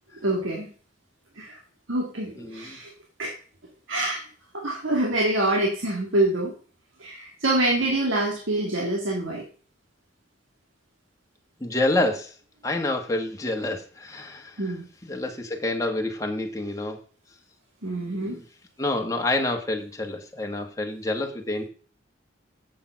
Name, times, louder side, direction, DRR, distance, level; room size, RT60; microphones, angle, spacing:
voice 1, 0.2-0.7 1.4-1.6 1.9-2.9 3.2-3.3 3.9-4.2 4.5-6.5 7.0-9.4 14.6-14.8 17.8-18.4, right 1 dB, 75° right, -1 dB, 2.0 m, -25 dB
voice 2, 2.4-2.8 9.2-9.4 11.6-12.3 12.6-14.8 15.0-17.0 18.0-18.4 18.8-21.6, left 2 dB, 15° left, 2 dB, 1.4 m, -28 dB
8.6 x 7.6 x 5.7 m, 0.42 s
head